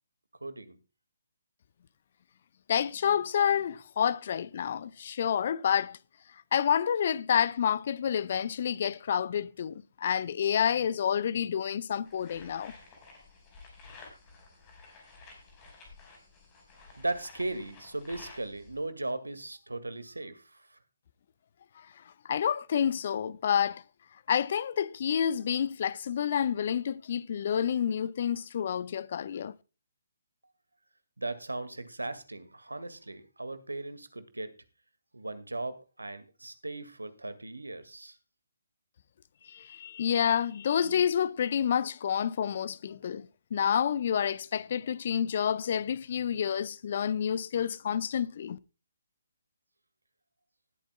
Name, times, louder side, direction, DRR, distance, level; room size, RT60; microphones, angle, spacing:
voice 1, 0.4-0.8 16.9-20.6 31.2-34.5 35.1-38.2, right 2 dB, 75° right, 1.9 m, -37 dB
voice 2, 2.7-6.0 6.5-12.7 21.8-21.9 22.2-23.8 24.3-29.5 39.4-48.6, left 8 dB, 40° left, 0.6 m, -29 dB
sound 1, 12.0-18.8, left 3 dB, 20° left, 4.9 m, -52 dB
19.5 x 9.0 x 2.3 m
figure-of-eight pair, 135°, 0 cm